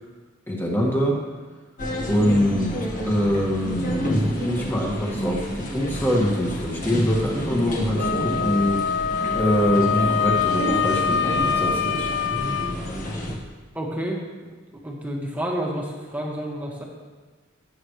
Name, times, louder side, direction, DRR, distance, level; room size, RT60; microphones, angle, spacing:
voice 1, 0.5-1.1 2.0-9.0 9.3-12.1, equal, 10° left, -2 dB, 2.0 m, -24 dB
sound 1, 1.8-13.4, equal, 40° left, 1.6 m, -29 dB
Wind instrument woodwind instrument, 8.0-12.7, left 6 dB, 60° left, 0.4 m, -24 dB
voice 2, 13.7-14.2 14.8-16.8, right 1 dB, 10° right, -2 dB, 1.7 m, -29 dB
18.5 x 8.2 x 3.2 m, 1.4 s
head